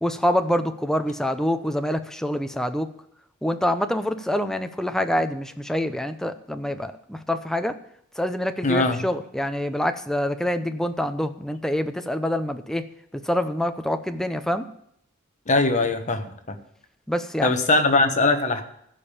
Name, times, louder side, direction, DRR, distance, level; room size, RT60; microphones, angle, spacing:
voice 1, 0.0-2.9 3.4-7.8 8.2-12.9 13.1-14.7 17.1-17.5, left 1 dB, ahead, 8 dB, 0.6 m, -26 dB
voice 2, 8.6-9.0 15.5-16.6 17.4-18.6, left 2 dB, 35° left, 6 dB, 1.3 m, -21 dB
15.5 x 5.2 x 7.2 m, 0.72 s
head